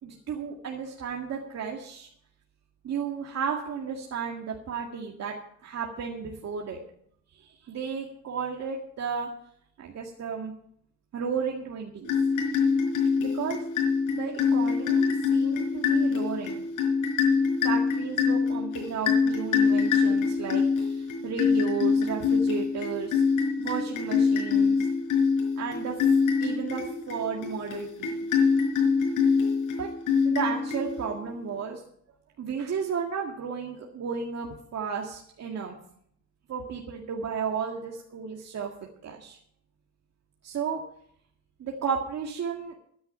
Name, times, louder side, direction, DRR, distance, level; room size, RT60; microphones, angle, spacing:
voice 1, 0.0-2.1 2.8-5.3 5.6-6.8 7.4-9.3 9.8-10.5 11.1-12.1 13.2-13.6 14.1-16.6 17.6-23.2 23.6-24.8 25.6-26.0 26.4-28.3 29.8-29.9 30.2-31.8 32.4-35.8 36.5-38.7 39.0-39.4 40.4-40.8 41.6-42.8, right 6 dB, 60° right, 0 dB, 2.0 m, -33 dB
sound 1, 12.0-31.3, left 5 dB, 85° left, 4.7 m, -25 dB
13.0 x 10.0 x 5.7 m, 0.66 s
cardioid pair, 90°, 30 cm